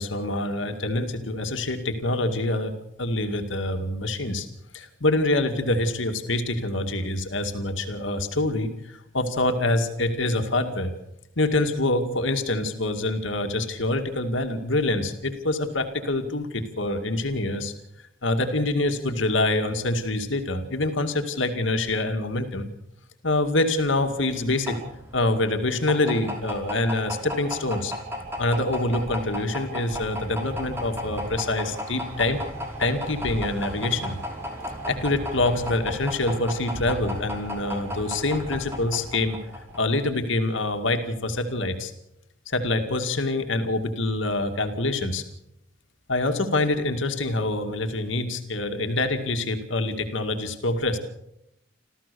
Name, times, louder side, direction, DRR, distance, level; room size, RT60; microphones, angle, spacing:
voice 1, 0.0-2.7 3.0-4.5 4.7-10.9 11.4-17.7 18.2-22.7 23.2-24.8 25.1-27.9 28.4-32.4 32.8-34.2 34.8-39.4 39.7-41.9 42.5-45.2 46.1-51.0, left 2 dB, 80° left, 6 dB, 2.2 m, -25 dB
sound 1, 24.0-39.9, equal, 15° right, 5.1 m, -34 dB
27.5 x 14.5 x 6.9 m, 0.81 s
head